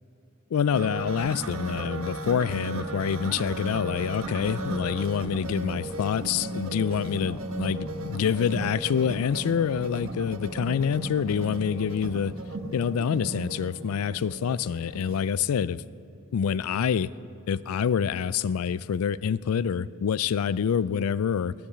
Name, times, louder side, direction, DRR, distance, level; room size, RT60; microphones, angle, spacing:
voice 1, 0.5-12.3 12.7-15.8 16.3-17.1 17.5-21.5, left 7 dB, 80° left, 19 dB, 0.4 m, -26 dB
sound 1, 0.7-15.1, right 2 dB, 75° right, 1.3 m, -35 dB
16.5 x 10.5 x 6.8 m, 2.8 s
head